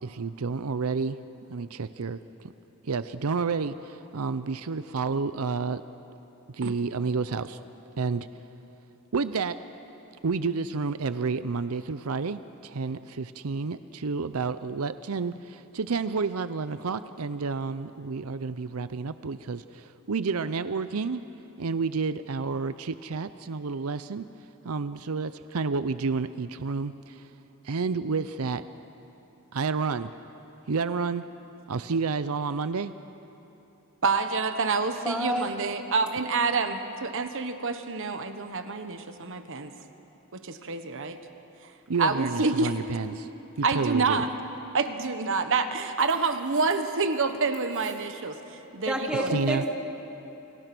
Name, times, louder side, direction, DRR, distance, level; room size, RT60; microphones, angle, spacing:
voice 1, 0.0-1.2 1.5-2.5 2.8-5.8 6.5-7.6 8.0-8.4 9.1-9.6 10.2-21.2 21.6-27.3 27.6-28.6 29.5-30.1 30.7-31.3 31.7-32.9 41.9-43.3 43.6-44.3 49.3-49.6, right 4 dB, 80° right, 13 dB, 0.6 m, -30 dB
voice 2, 34.0-39.7 40.3-41.2 42.0-42.7 43.6-44.3 44.7-49.3, right 4 dB, 65° right, 8 dB, 1.3 m, -27 dB
voice 3, 35.0-35.5 48.8-49.7, right 1 dB, 5° right, 0 dB, 2.4 m, -28 dB
29.5 x 26.0 x 6.1 m, 3.0 s
head